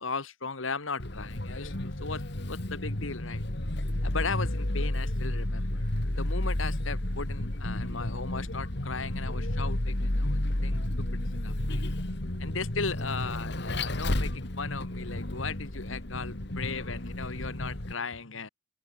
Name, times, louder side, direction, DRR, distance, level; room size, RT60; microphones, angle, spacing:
voice 1, 0.0-3.4 4.0-5.9 6.2-11.1 11.4-11.8 12.4-18.5, left 4 dB, 80° left, 1.8 m, -37 dB
Vehicle, 1.0-17.9, left 1 dB, 55° left, 2.1 m, -31 dB
open air
head